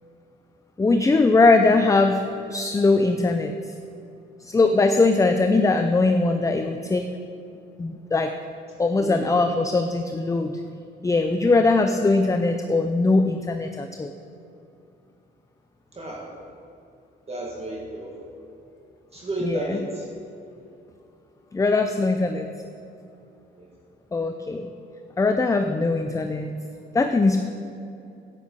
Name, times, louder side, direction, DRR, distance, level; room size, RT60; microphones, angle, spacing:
voice 1, 0.8-3.5 4.4-7.1 7.8-8.3 8.8-10.6 11.0-14.1 19.4-19.8 21.5-22.5 24.1-24.7 25.2-26.5 26.9-27.4, left 3 dB, 15° left, 7 dB, 0.5 m, -21 dB
voice 2, 15.9-16.3 17.3-18.1 19.1-20.0 23.6-23.7, right 1 dB, 30° right, -3 dB, 2.0 m, -32 dB
9.9 x 9.3 x 5.5 m, 2.7 s
cardioid pair, 90°, 20 cm